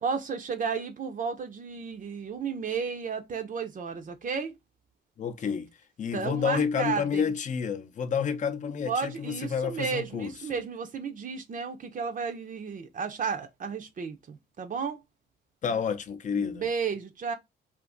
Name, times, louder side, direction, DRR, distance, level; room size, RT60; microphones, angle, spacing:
voice 1, 0.0-4.5 6.1-7.2 8.9-15.0 16.4-17.3, right 5 dB, 40° right, 0.5 m, -33 dB
voice 2, 5.2-5.7 6.0-10.3 15.6-16.7, left 6 dB, 40° left, 0.5 m, -29 dB
2.5 x 2.4 x 3.6 m
cardioid pair, 90°, 20 cm